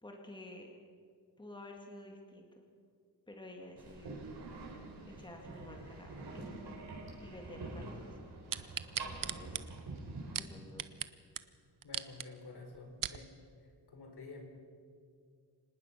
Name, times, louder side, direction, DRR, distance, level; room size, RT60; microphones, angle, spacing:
voice 1, 0.0-0.7 1.4-2.6 3.3-4.3 5.1-6.6 7.2-8.0 9.0-9.6 10.3-11.0, left 1 dB, 10° left, 2 dB, 2.1 m, -51 dB
sound 1, 3.8-10.4, right 2 dB, 65° right, 4.8 m, -46 dB
sound 2, 8.5-11.1 11.4-11.5 11.8-12.3 12.7-13.2 13.8-13.9, right 9 dB, 50° right, 0.8 m, -38 dB
voice 2, 11.8-13.3 13.9-14.4, left 3 dB, 65° left, 3 dB, 4.1 m, -50 dB
25.5 x 19.5 x 6.0 m, 2.2 s
wide cardioid pair, 125°, 42 cm